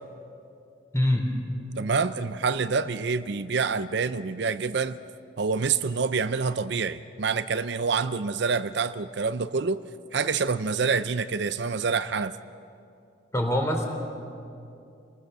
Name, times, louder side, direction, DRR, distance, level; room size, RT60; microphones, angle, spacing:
voice 1, 0.9-1.2 13.3-13.9, left 1 dB, 15° left, 2 dB, 3.3 m, -23 dB
voice 2, 1.8-5.0 5.4-9.8 10.1-12.3, right 5 dB, 60° right, 12 dB, 0.5 m, -27 dB
29.0 x 20.0 x 6.7 m, 2.6 s
head